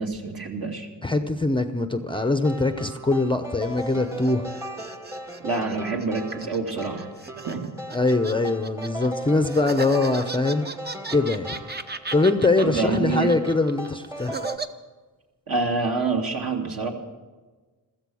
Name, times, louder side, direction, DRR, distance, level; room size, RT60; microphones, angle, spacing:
voice 1, 0.0-0.9 5.4-7.1 7.5-7.6 12.6-13.3 15.5-16.9, right 3 dB, 55° right, 1 dB, 2.7 m, -27 dB
voice 2, 1.0-4.5 7.9-10.7 11.1-11.7 12.1-14.4, left 2 dB, 10° left, 8 dB, 0.8 m, -23 dB
sound 1, 2.1-14.6, right 1 dB, 5° right, 1.2 m, -38 dB
sound 2, 3.7-9.1 9.5-14.7, right 4 dB, 25° right, 0.9 m, -36 dB
15.5 x 14.0 x 6.4 m, 1.3 s
cardioid pair, 95°, 42 cm